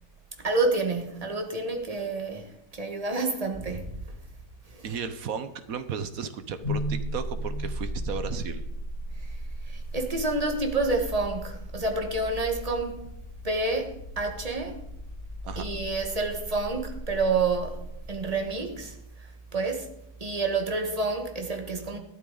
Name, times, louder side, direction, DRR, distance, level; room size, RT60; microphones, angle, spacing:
voice 1, 0.4-4.2 4.7-4.9 9.2-9.4 9.6-13.1 13.4-14.8 15.5-19.0 19.5-19.9 20.2-22.0, right 3 dB, 25° right, 1.4 m, -29 dB
voice 2, 4.8-8.6 15.4-15.7, right 6 dB, 60° right, 1.2 m, -34 dB
sound 1, 6.6-18.7, equal, 60° left, 5.2 m, -36 dB
14.0 x 12.5 x 3.9 m
omnidirectional pair, 1.8 m